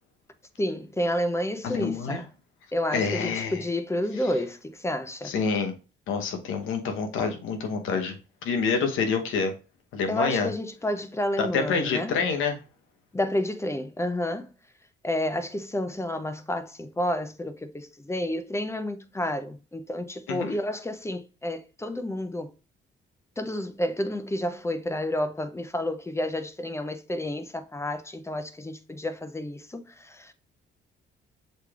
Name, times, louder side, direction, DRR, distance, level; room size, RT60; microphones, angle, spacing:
voice 1, 0.6-2.3 2.7-5.3 10.1-12.1 13.1-14.5 15.0-22.5 23.4-30.3, left 1 dB, 15° left, 0.5 m, -30 dB
voice 2, 1.6-2.2 2.9-3.6 5.2-5.7 6.1-8.1 8.4-9.5 9.9-10.5 11.4-12.6 20.3-20.5, left 5 dB, 85° left, 1.0 m, -27 dB
6.6 x 3.3 x 2.4 m
cardioid pair, 90°, 20 cm